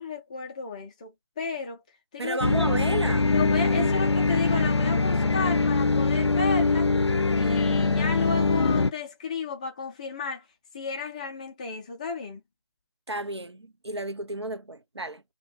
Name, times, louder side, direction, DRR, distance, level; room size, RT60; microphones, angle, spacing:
voice 1, 0.0-1.8 2.1-2.8 3.3-6.9 7.4-10.4 10.7-12.4, left 5 dB, 15° left, 0.5 m, -33 dB
voice 2, 2.2-3.3 3.8-3.9 13.1-15.2, right 2 dB, 80° right, 0.7 m, -32 dB
sound 1, 2.4-8.9, left 3 dB, 85° left, 0.4 m, -23 dB
2.3 x 2.2 x 3.1 m
figure-of-eight pair, 150°, 14 cm